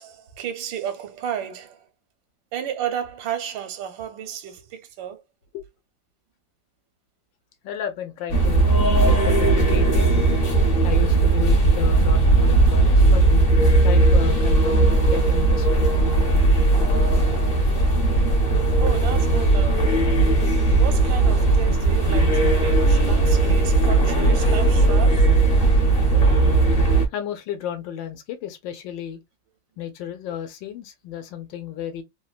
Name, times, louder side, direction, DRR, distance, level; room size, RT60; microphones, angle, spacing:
voice 1, 0.0-1.9 2.5-5.2 18.8-20.1 20.8-25.3, right 9 dB, 85° right, 1.3 m, -33 dB
voice 2, 7.6-8.7 9.0-10.1 10.8-13.2 13.8-15.9 27.1-29.2 29.8-32.0, left 9 dB, 80° left, 1.4 m, -33 dB
sound 1, 8.3-27.1, right 2 dB, 45° left, 0.7 m, -18 dB
3.2 x 2.1 x 2.2 m
omnidirectional pair, 2.0 m